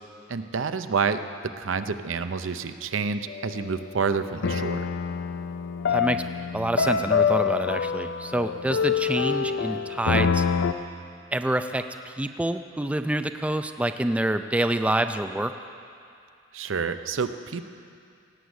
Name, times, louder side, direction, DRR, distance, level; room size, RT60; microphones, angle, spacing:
voice 1, 0.3-1.2 1.6-4.9 16.5-17.6, right 5 dB, 70° right, 10 dB, 0.6 m, -28 dB
sound 1, 3.3-3.6 4.4-10.7, left 6 dB, 60° left, 0.5 m, -26 dB
voice 2, 5.9-6.2 6.5-10.5 11.3-15.5, right 1 dB, 5° right, 8 dB, 0.3 m, -27 dB
17.5 x 8.2 x 7.9 m, 2.4 s
head